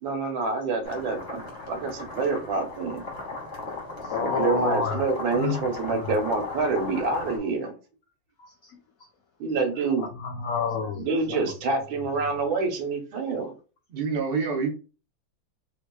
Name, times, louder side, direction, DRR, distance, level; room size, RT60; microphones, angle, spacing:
voice 1, 0.0-1.4 1.7-3.0 4.2-7.7 9.4-10.1 11.1-13.5, right 4 dB, 85° right, 1.7 m, -27 dB
sound 1, 0.8-7.4, left 3 dB, 50° left, 1.2 m, -37 dB
voice 2, 4.0-5.0 5.3-6.1 8.4-9.1 10.0-11.4, left 5 dB, 85° left, 0.7 m, -30 dB
voice 3, 13.9-14.7, right 5 dB, 70° right, 0.5 m, -26 dB
3.5 x 3.4 x 2.2 m
omnidirectional pair, 2.1 m